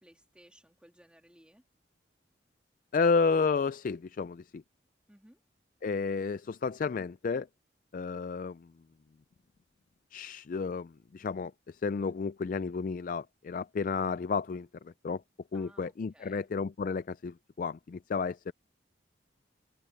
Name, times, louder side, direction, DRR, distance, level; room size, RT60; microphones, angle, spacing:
voice 1, 0.0-1.6 5.1-5.4 15.5-16.5, right 1 dB, 5° right, 2.4 m, -60 dB
voice 2, 2.9-4.6 5.8-7.5 7.9-8.7 10.1-15.2 15.5-18.5, left 5 dB, 50° left, 0.3 m, -31 dB
head